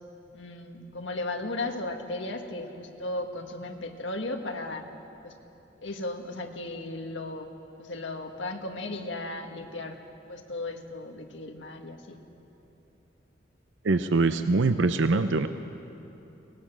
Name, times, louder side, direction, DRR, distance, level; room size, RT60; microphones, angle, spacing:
voice 1, 0.3-4.8 5.2-5.3 5.8-7.5 7.8-10.0 10.3-12.2, left 2 dB, 80° left, 4 dB, 1.7 m, -35 dB
voice 2, 13.8-15.5, right 3 dB, 80° right, 10 dB, 0.6 m, -23 dB
23.5 x 18.5 x 6.1 m, 3.0 s
head